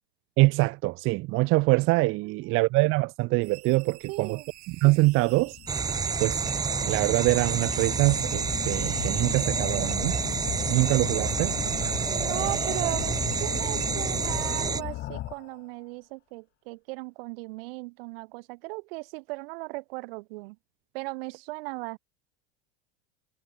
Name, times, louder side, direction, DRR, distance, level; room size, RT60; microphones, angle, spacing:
voice 1, 0.4-4.4 4.7-5.6 6.2-6.4 6.8-10.2 10.7-11.5, right 22 dB, 40° right, 0.9 m, -24 dB
voice 2, 2.3-2.6 4.1-4.5 12.1-20.6 20.9-22.0, right 26 dB, 65° right, 1.8 m, -37 dB
sound 1, 3.4-15.3, right 18 dB, 90° right, 3.1 m, -50 dB
sound 2, 4.2-4.3 4.9-15.6, left 15 dB, 35° left, 1.6 m, -37 dB
sound 3, 5.7-14.8, right 5 dB, 10° right, 1.0 m, -29 dB
supercardioid pair, 155°, 31 cm